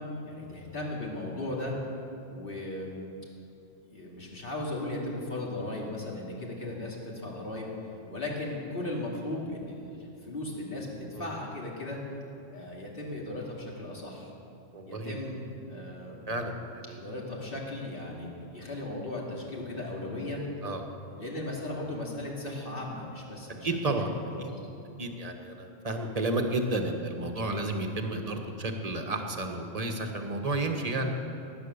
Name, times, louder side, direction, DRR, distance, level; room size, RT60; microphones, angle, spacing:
voice 1, 0.2-1.7 2.3-3.0 3.8-7.7 8.1-12.0 12.5-14.3 14.9-16.4 17.0-20.4 21.2-23.7 24.0-24.6, left 2 dB, 45° left, -3 dB, 2.8 m, -37 dB
voice 2, 14.7-15.4 16.3-17.0 20.6-20.8 23.6-24.1 24.4-24.5 25.0-31.1, right 2 dB, 30° right, 4 dB, 1.3 m, -32 dB
18.5 x 9.6 x 6.8 m, 2.9 s
omnidirectional pair, 1.3 m